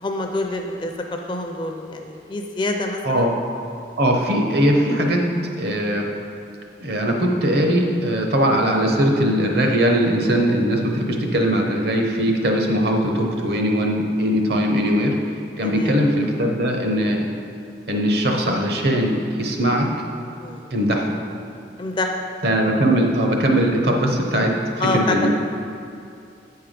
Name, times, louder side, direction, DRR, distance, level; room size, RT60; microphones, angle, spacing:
voice 1, 0.0-3.3 15.6-15.9 20.4-20.7 21.8-22.1 24.8-25.3, left 2 dB, 25° left, 2 dB, 0.5 m, -26 dB
voice 2, 4.0-5.3 5.6-6.1 6.8-15.1 15.6-17.3 17.9-19.9 20.7-21.1 22.4-24.5 24.9-25.3, equal, 60° right, 1 dB, 0.9 m, -20 dB
8.1 x 4.6 x 5.1 m, 2.6 s
head